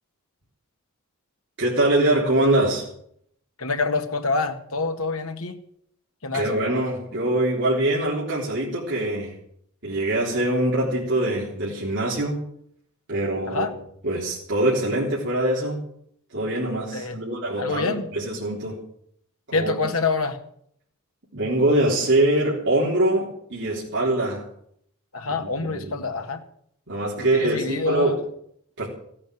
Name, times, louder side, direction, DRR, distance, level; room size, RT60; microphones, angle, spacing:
voice 1, 1.6-2.8 6.3-9.3 9.8-12.4 13.1-13.7 14.0-15.8 16.3-18.8 19.5-19.8 21.3-24.4 25.3-25.9 26.9-28.2 28.8-28.9, right 1 dB, 55° right, -5 dB, 3.7 m, -23 dB
voice 2, 3.6-5.6 6.2-6.7 13.5-13.7 16.9-17.2 17.6-18.1 19.5-20.4 25.1-26.4 27.2-28.2, left 3 dB, 70° left, 6 dB, 1.9 m, -26 dB
15.5 x 8.7 x 9.3 m, 0.68 s
head